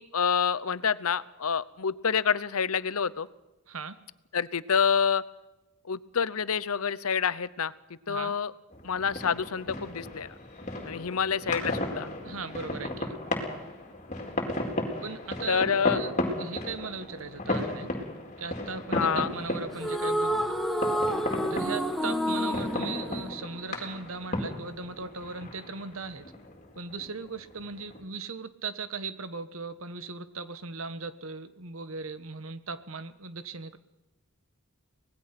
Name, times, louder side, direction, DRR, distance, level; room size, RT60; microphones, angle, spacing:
voice 1, 0.0-3.3 4.3-5.2 5.8-7.7 8.1-8.5 8.8-10.3 10.9-12.1 15.5-16.0 18.9-19.3, left 6 dB, 80° left, 17 dB, 0.8 m, -27 dB
voice 2, 3.7-4.0 8.1-8.3 12.2-13.1 15.0-17.9 18.4-20.5 21.5-26.3 26.7-33.8, right 4 dB, 70° right, 12 dB, 1.4 m, -38 dB
sound 1, 8.7-28.0, left 1 dB, 35° left, 4.2 m, -35 dB
sound 2, 19.7-24.2, equal, ahead, 1.5 m, -29 dB
25.0 x 19.5 x 6.0 m, 1.0 s
head